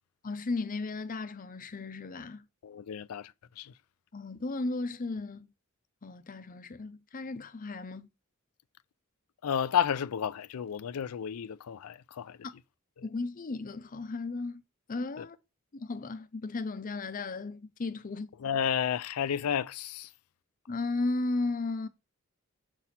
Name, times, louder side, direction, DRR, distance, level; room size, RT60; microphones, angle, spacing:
voice 1, 0.2-2.4 4.1-5.5 6.0-8.1 12.4-12.5 13.0-14.6 14.9-15.4 15.7-18.3 20.7-21.9, left 3 dB, 40° left, 0.6 m, -35 dB
voice 2, 2.6-3.3 3.6-3.7 9.4-12.4 15.2-15.3 18.4-20.1, left 8 dB, 85° left, 0.4 m, -31 dB
6.8 x 4.3 x 4.1 m
head